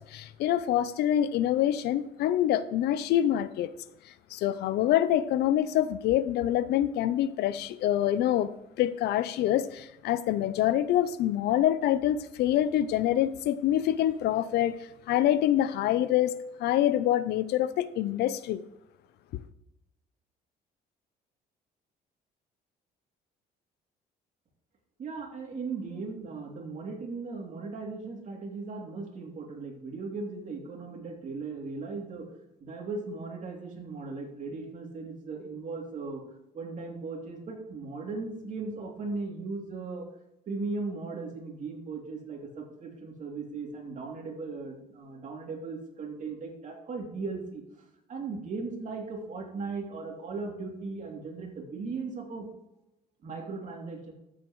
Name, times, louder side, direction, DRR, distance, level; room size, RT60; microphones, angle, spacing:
voice 1, 0.0-3.7 4.3-8.5 8.8-14.8 15.1-18.6, left 12 dB, 75° left, 0.6 m, -26 dB
voice 2, 25.0-32.3 32.6-36.2 36.5-40.1 40.5-47.6 48.1-52.5 53.2-54.1, right 4 dB, 50° right, 2.9 m, -37 dB
13.0 x 8.0 x 3.1 m
cardioid pair, 110°, 17 cm